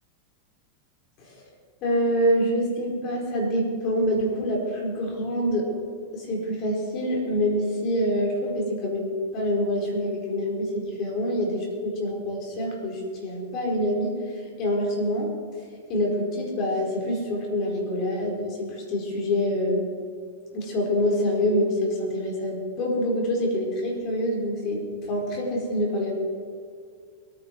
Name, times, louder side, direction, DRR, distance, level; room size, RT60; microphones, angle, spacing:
voice 1, 1.8-5.7 6.1-14.1 14.6-15.3 15.9-19.8 20.5-24.8 25.1-26.1, equal, 45° left, 0 dB, 4.6 m, -26 dB
22.5 x 9.6 x 4.7 m, 2.2 s
hypercardioid pair, 105°, 0 cm